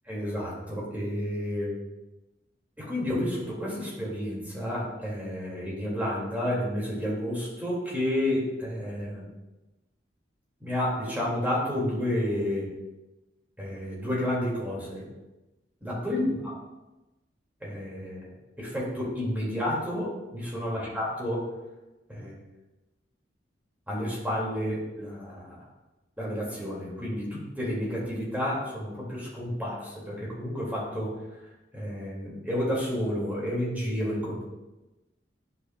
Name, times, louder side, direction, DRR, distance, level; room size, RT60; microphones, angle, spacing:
voice 1, 0.0-1.8 2.8-9.2 10.6-12.7 13.6-15.1 15.8-16.5 17.6-18.3 18.6-21.5 22.1-22.4 23.9-25.6 26.2-31.2 31.7-34.4, left 1 dB, 10° right, -5 dB, 2.1 m, -30 dB
10.0 x 5.6 x 2.2 m, 1.0 s
head